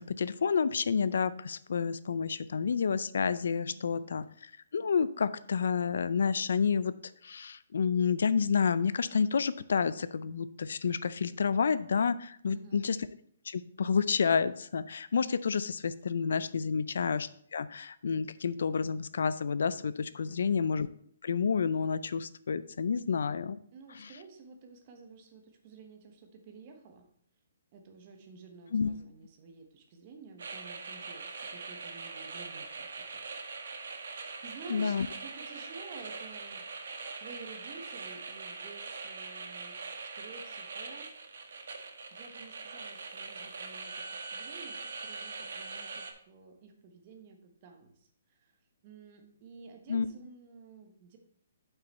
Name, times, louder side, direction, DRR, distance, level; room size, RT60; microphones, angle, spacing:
voice 1, 0.0-4.2 4.7-6.9 7.2-13.0 13.5-20.9 21.2-23.6 28.7-28.9 34.7-35.1 49.9-50.1, left 6 dB, 70° left, 15 dB, 0.4 m, -29 dB
voice 2, 3.7-4.1 12.5-12.8 16.7-16.9 20.3-20.6 23.7-27.1 27.7-33.3 33.5-36.7 37.2-41.1 42.1-48.6 48.8-51.2, right 4 dB, 30° right, 5 dB, 1.1 m, -52 dB
sound 1, 30.4-46.1, right 4 dB, 70° right, 1.2 m, -42 dB
7.9 x 5.7 x 4.1 m, 0.64 s
hypercardioid pair, 170°, 0 cm